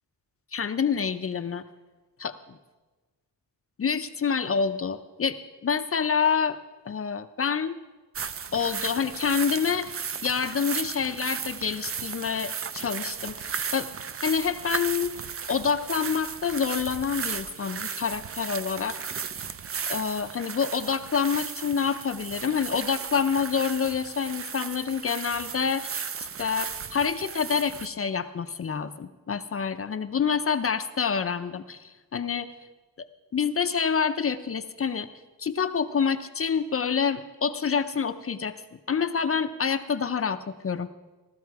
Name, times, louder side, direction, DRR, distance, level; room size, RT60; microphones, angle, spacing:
voice 1, 0.5-1.6 2.2-2.3 3.8-6.6 6.9-7.7 8.5-9.9 10.2-13.9 14.2-15.1 15.5-19.0 19.9-25.9 26.4-32.5 33.3-35.1 35.4-38.5 38.9-40.9, left 6 dB, 35° left, 9 dB, 0.5 m, -27 dB
sound 1, 8.1-27.9, right 6 dB, 35° right, 0.5 m, -35 dB
16.0 x 13.0 x 4.7 m, 1.2 s
wide cardioid pair, 155°, 38 cm